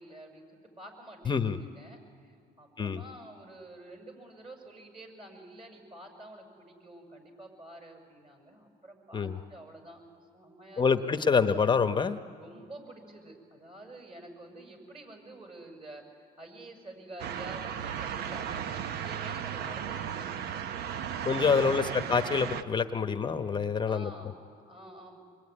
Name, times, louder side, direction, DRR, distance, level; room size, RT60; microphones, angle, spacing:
voice 1, 0.0-10.0 10.3-11.4 12.4-16.0 16.4-20.6 21.1-21.2 21.6-22.3 23.8-25.2, right 1 dB, 35° right, 3 dB, 6.7 m, -49 dB
voice 2, 1.3-1.6 2.8-3.0 9.1-9.4 10.8-12.2 21.2-24.1, left 5 dB, 25° left, 9 dB, 0.9 m, -26 dB
sound 1, 17.2-22.6, right 8 dB, 70° right, 0.9 m, -35 dB
25.5 x 22.0 x 9.8 m, 2.4 s
cardioid pair, 110°, 17 cm